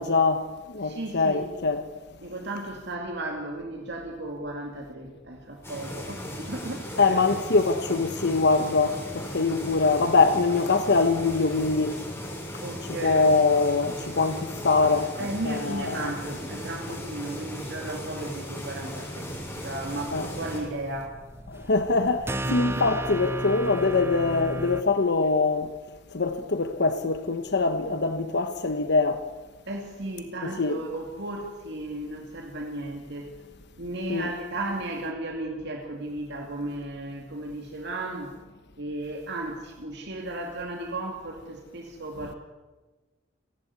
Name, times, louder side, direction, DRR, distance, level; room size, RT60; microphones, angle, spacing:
voice 1, 0.0-1.8 7.0-12.0 13.0-16.1 20.1-20.3 21.5-25.7 26.1-29.2 30.6-30.8 34.1-34.3, left 3 dB, 60° left, 1.1 m, -23 dB
voice 2, 0.8-1.5 2.2-7.2 12.6-13.3 15.2-19.3 19.6-21.2 22.4-22.9 29.7-33.3 33.8-38.4 38.8-42.4, right 2 dB, 60° right, 2.4 m, -35 dB
sound 1, 5.6-20.6, equal, 15° left, 6.6 m, -37 dB
sound 2, 19.3-24.8, right 1 dB, 15° right, 0.9 m, -35 dB
29.5 x 11.5 x 9.5 m
head